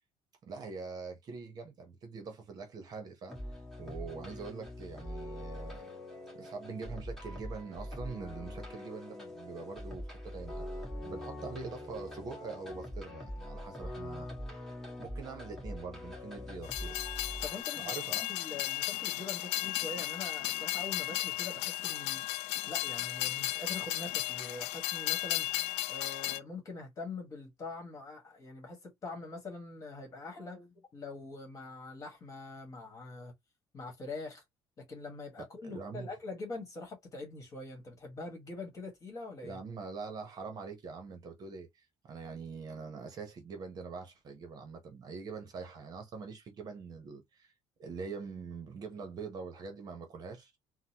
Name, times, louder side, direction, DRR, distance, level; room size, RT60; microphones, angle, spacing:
voice 1, 0.4-3.4 3.8-5.9 6.3-14.3 15.0-17.0 17.8-18.3 35.6-36.1 39.4-47.5 47.8-50.6, right 4 dB, 40° right, 0.9 m, -44 dB
sound 1, 3.3-17.6, left 1 dB, 5° left, 1.6 m, -43 dB
Train, 16.6-26.4, left 16 dB, 80° left, 0.4 m, -35 dB
voice 2, 17.4-17.9 18.3-22.2 22.7-25.5 25.9-33.3 33.7-34.4 34.8-39.6, left 3 dB, 30° left, 1.5 m, -44 dB
3.9 x 2.1 x 2.8 m
cardioid pair, 155°, 11 cm